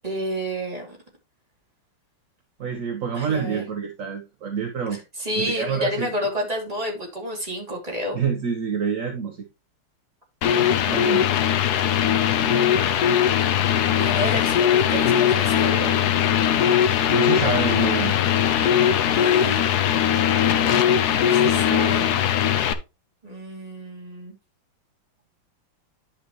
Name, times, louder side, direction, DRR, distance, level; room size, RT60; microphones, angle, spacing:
voice 1, 0.0-1.0 3.2-3.6 5.2-8.2 13.9-15.9 19.1-19.7 21.2-22.1 23.2-24.3, equal, 15° right, 2.7 m, -30 dB
voice 2, 2.6-5.0 5.4-6.2 8.1-9.4 10.6-11.3 17.1-18.1, right 6 dB, 50° right, 1.1 m, -27 dB
sound 1, 10.4-22.7, left 9 dB, 65° left, 1.0 m, -20 dB
10.5 x 5.9 x 3.1 m
omnidirectional pair, 2.4 m